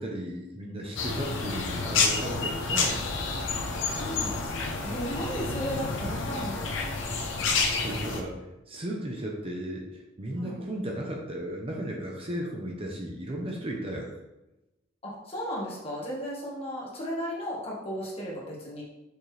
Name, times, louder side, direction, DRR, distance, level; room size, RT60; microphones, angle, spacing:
voice 1, 0.0-3.1 7.7-8.4 8.7-14.1, right 1 dB, 30° right, -1 dB, 0.8 m, -35 dB
sound 1, 1.0-8.2, left 4 dB, 70° left, 0.8 m, -29 dB
voice 2, 3.8-7.0 10.4-10.6 15.0-18.8, equal, 30° left, -5 dB, 1.7 m, -36 dB
6.5 x 4.4 x 3.3 m, 0.98 s
head